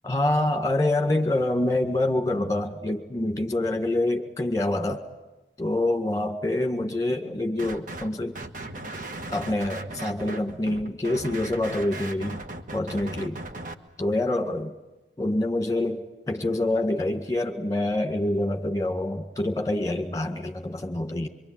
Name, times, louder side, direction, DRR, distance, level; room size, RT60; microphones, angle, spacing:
voice 1, 0.0-5.0 5.6-8.4 9.3-12.4 12.7-13.4 14.0-14.7 15.2-21.3, left 1 dB, 20° left, 6 dB, 1.9 m, -26 dB
sound 1, 7.6-8.1 8.3-13.7, right 2 dB, 45° right, 1.5 m, -37 dB
24.5 x 24.5 x 9.0 m, 1.1 s
head